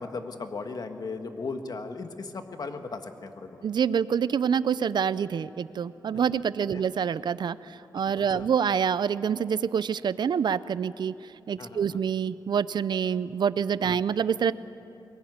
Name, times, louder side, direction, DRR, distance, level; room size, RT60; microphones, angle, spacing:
voice 1, 0.0-3.6 6.7-6.8 8.2-8.5 11.6-11.8 13.9-14.0, left 4 dB, 60° left, 6 dB, 1.7 m, -37 dB
voice 2, 3.6-14.5, right 7 dB, 80° right, 16 dB, 0.5 m, -26 dB
23.0 x 20.0 x 9.5 m, 2.8 s
cardioid pair, 80°, 7 cm